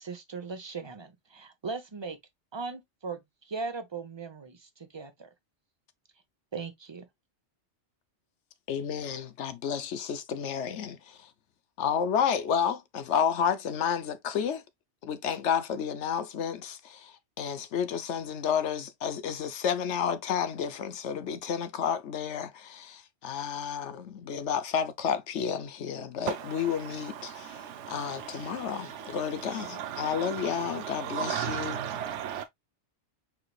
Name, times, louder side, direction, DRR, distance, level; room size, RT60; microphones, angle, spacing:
voice 1, 0.0-2.2 2.5-3.2 3.5-5.3 6.5-7.1, right 4 dB, 25° right, 0.9 m, -38 dB
voice 2, 8.7-11.3 11.8-14.6 15.0-31.8, left 7 dB, 75° left, 1.0 m, -31 dB
voice 3, 26.3-32.4, right 9 dB, 75° right, 0.9 m, -36 dB
4.8 x 4.7 x 2.3 m
omnidirectional pair, 1.2 m